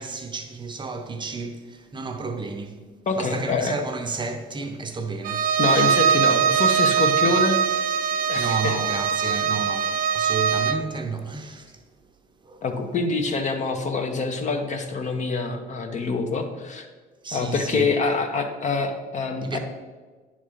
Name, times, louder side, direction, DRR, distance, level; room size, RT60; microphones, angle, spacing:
voice 1, 0.0-2.8 3.1-5.5 8.1-11.8 12.4-12.9 17.2-17.9 19.4-19.6, right 4 dB, 30° right, 0.7 m, -32 dB
voice 2, 3.1-3.8 5.6-7.6 8.3-8.8 12.6-16.9 17.3-19.6, left 4 dB, 45° left, 1.0 m, -25 dB
Bowed string instrument, 5.2-10.9, right 7 dB, 55° right, 0.5 m, -22 dB
9.8 x 3.6 x 5.0 m
cardioid pair, 110°, 17 cm